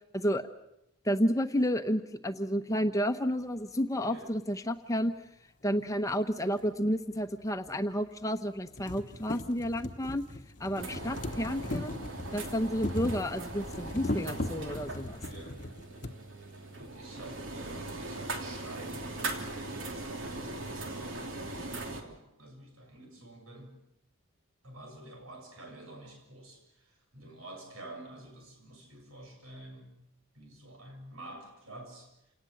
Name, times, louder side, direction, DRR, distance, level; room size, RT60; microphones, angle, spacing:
voice 1, 0.1-0.5 1.0-5.1 5.6-10.2 10.6-12.0 12.3-15.2, equal, 15° left, 8 dB, 0.9 m, -31 dB
sound 1, 6.6-6.7 7.7-7.8 8.2-8.3 8.6-16.2 17.1-17.2 17.4-17.5, left 1 dB, 35° left, 1.0 m, -39 dB
voice 2, 10.7-11.0 15.2-15.6 16.5-23.8 24.6-29.9 30.3-32.1, right 1 dB, 85° right, 4 dB, 6.9 m, -49 dB
sound 2, 10.8-22.0, right 2 dB, 65° right, 3.1 m, -40 dB
28.5 x 19.0 x 7.9 m, 0.84 s
head